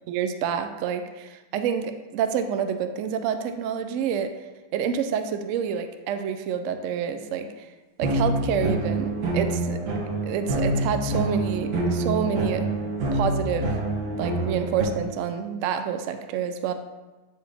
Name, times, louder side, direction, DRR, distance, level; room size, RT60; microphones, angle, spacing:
voice 1, 0.1-4.3 4.7-7.7 8.0-9.8 10.2-12.6 13.1-13.8 14.2-16.7, right 7 dB, 85° right, 8 dB, 0.6 m, -28 dB
sound 1, 8.0-14.9, right 2 dB, 70° right, 1.6 m, -26 dB
8.5 x 4.3 x 3.4 m, 1.2 s
omnidirectional pair, 1.9 m